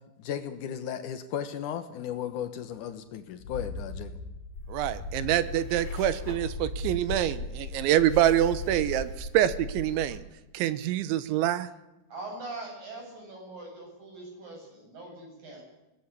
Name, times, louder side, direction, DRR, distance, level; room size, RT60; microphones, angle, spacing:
voice 1, 0.2-4.2, left 9 dB, 90° left, 9 dB, 1.7 m, -35 dB
sound 1, 3.4-9.5, left 2 dB, 70° left, 3.8 m, -40 dB
sound 2, 4.5-10.2, left 2 dB, 35° left, 4.0 m, -39 dB
voice 2, 4.7-10.2 10.5-11.7, right 12 dB, 80° right, 14 dB, 3.2 m, -26 dB
voice 3, 12.1-15.6, right 2 dB, 45° right, 1 dB, 9.1 m, -42 dB
22.5 x 19.0 x 8.5 m, 0.98 s
omnidirectional pair, 5.4 m